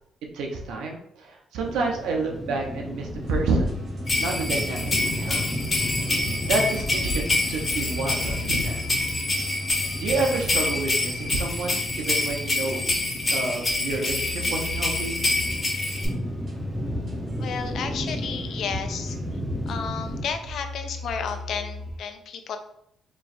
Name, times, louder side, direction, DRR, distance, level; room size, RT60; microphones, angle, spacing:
voice 1, 0.3-3.8 4.2-5.4 6.4-8.8 10.0-12.8 13.3-15.1, right 3 dB, 85° right, 1 dB, 0.9 m, -29 dB
sound 1, 1.6-20.2, equal, 5° left, 0.9 m, -34 dB
sound 2, 3.2-22.0, left 1 dB, 60° right, 1.4 m, -38 dB
sound 3, 4.1-16.1, left 2 dB, 25° left, 1.3 m, -27 dB
voice 2, 17.4-19.2 19.7-22.6, left 6 dB, 70° left, 7 dB, 0.5 m, -32 dB
4.5 x 3.2 x 2.6 m, 0.74 s
cardioid pair, 90°, 0 cm